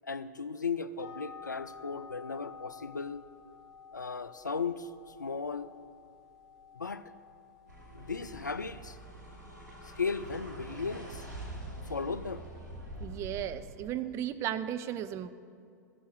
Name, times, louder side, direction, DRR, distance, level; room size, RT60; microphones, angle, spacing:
voice 1, 0.0-3.2 3.9-5.7 6.7-7.0 7.9-9.0 9.8-11.2 11.9-12.4, left 5 dB, 85° left, 13 dB, 0.4 m, -36 dB
sound 1, 1.0-13.3, left 6 dB, 5° right, 2.0 m, -53 dB
sound 2, 7.7-14.0, right 1 dB, 85° right, 2.8 m, -45 dB
voice 2, 13.0-15.3, right 11 dB, 30° right, 11 dB, 0.5 m, -35 dB
15.5 x 7.1 x 4.7 m, 2.4 s
figure-of-eight pair, 95°, 10 cm